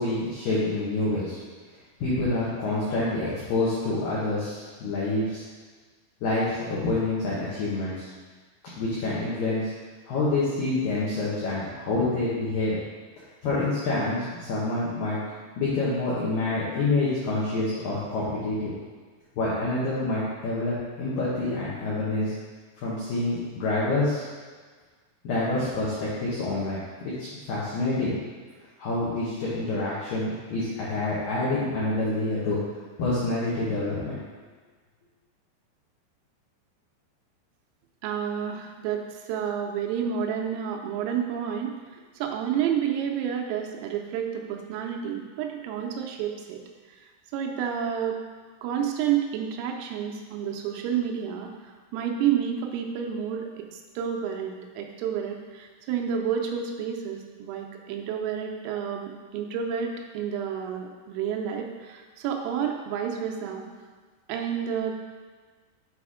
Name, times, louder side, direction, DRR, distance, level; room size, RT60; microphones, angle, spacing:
voice 1, 0.0-1.4 2.0-5.4 6.2-8.1 8.8-9.7 10.1-12.8 13.4-15.2 15.6-18.7 19.4-22.3 22.8-24.3 25.2-28.1 28.8-32.6 33.0-34.2, left 2 dB, 75° left, -8 dB, 2.1 m, -27 dB
voice 2, 38.0-46.6 47.3-48.2 48.6-51.5 51.9-63.7 64.3-64.9, right 8 dB, 90° right, 2 dB, 3.4 m, -30 dB
7.9 x 4.2 x 4.8 m, 1.5 s
omnidirectional pair, 5.8 m